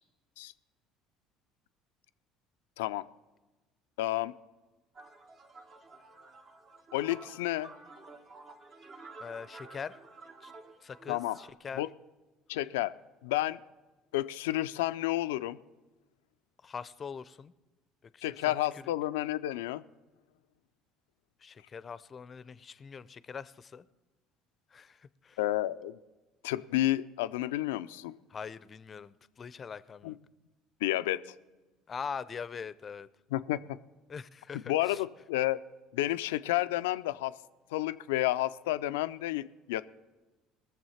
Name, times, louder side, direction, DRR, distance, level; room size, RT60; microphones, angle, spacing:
voice 1, 4.0-4.3 6.9-7.7 11.1-11.4 11.8-11.9 12.5-12.9 13.2-13.6 14.1-15.6 18.2-19.8 25.4-26.0 26.4-28.1 30.0-30.1 30.8-31.2 33.3-33.6 34.7-35.6 35.9-37.3 37.7-39.8, left 15 dB, 90° left, 13 dB, 0.4 m, -30 dB
sound 1, 4.9-11.5, right 3 dB, 50° right, 1.5 m, -51 dB
voice 2, 9.2-10.0 10.4-10.5 10.8-11.9 16.6-17.5 18.1-18.4 18.7-18.8 21.4-23.9 24.7-25.4 28.3-30.2 31.9-33.1 34.1-35.0, left 6 dB, 35° left, 17 dB, 0.6 m, -42 dB
20.0 x 7.1 x 5.7 m, 1.2 s
supercardioid pair, 80°, 0 cm